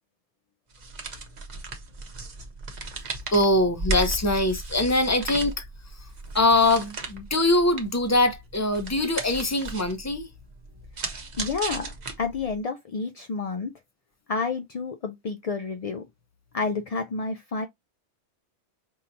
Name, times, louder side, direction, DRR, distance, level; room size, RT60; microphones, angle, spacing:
sound 1, 0.7-12.6, right 2 dB, 40° right, 0.9 m, -36 dB
voice 1, 3.3-5.7 5.9-6.1 6.3-10.3, left 2 dB, 15° left, 0.6 m, -23 dB
voice 2, 11.1-13.7 14.3-16.0 16.5-17.7, left 4 dB, 60° left, 0.4 m, -30 dB
5.3 x 2.8 x 2.6 m
omnidirectional pair, 1.2 m